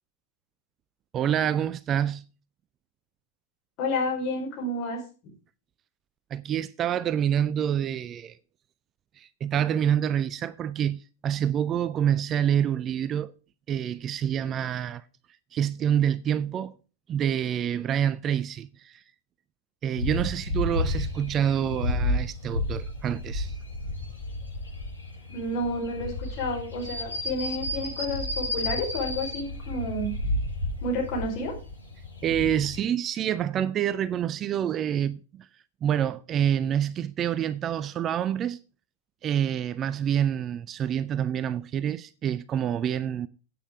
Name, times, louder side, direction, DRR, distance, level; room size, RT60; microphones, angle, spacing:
voice 1, 1.1-2.2 6.3-8.4 9.2-13.3 13.7-15.0 15.5-16.7 17.1-19.0 19.8-23.6 32.2-35.5 35.8-38.6 39.2-43.3, right 9 dB, 30° right, 0.5 m, -27 dB
voice 2, 3.8-5.0 25.3-30.1 30.8-31.5, left 1 dB, 40° left, 5.2 m, -30 dB
sound 1, 20.0-32.8, left 2 dB, 90° left, 6.3 m, -32 dB
9.8 x 8.6 x 4.7 m
figure-of-eight pair, 90°, 0 cm